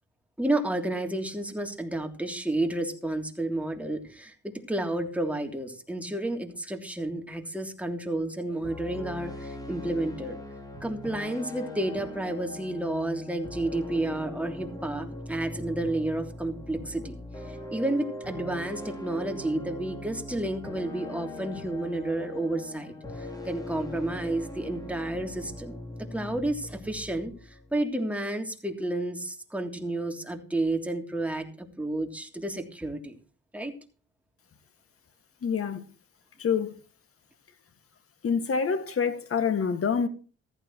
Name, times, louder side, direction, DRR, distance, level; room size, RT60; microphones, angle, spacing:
voice 1, 0.4-10.4 10.8-17.2 17.5-25.8 26.1-33.2 33.5-33.7, right 1 dB, 5° right, 3.1 m, -31 dB
sound 1, 8.6-27.8, left 1 dB, 10° left, 3.8 m, -40 dB
voice 2, 35.4-35.9 36.4-36.8 38.2-40.1, left 6 dB, 50° left, 2.2 m, -26 dB
15.0 x 14.5 x 3.1 m
cardioid pair, 90°, 30 cm